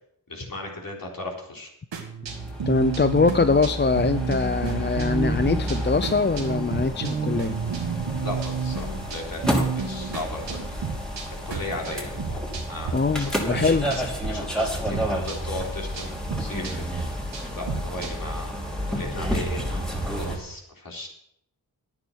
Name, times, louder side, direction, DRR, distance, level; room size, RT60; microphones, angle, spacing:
voice 1, 0.3-1.7 8.2-10.6 11.3-14.0 14.3-16.9 17.5-18.5 18.9-19.8 20.2-21.1, left 2 dB, 50° left, -1 dB, 4.0 m, -36 dB
sound 1, 1.9-12.9 13.2-14.3 14.6-18.4, right 5 dB, 80° right, 2.0 m, -32 dB
sound 2, 2.3-20.4, equal, ahead, 3.3 m, -31 dB
voice 2, 2.7-7.6 12.9-13.9, left 4 dB, 25° left, 11 dB, 0.6 m, -23 dB
10.5 x 9.6 x 6.4 m, 0.74 s
cardioid pair, 50°, 42 cm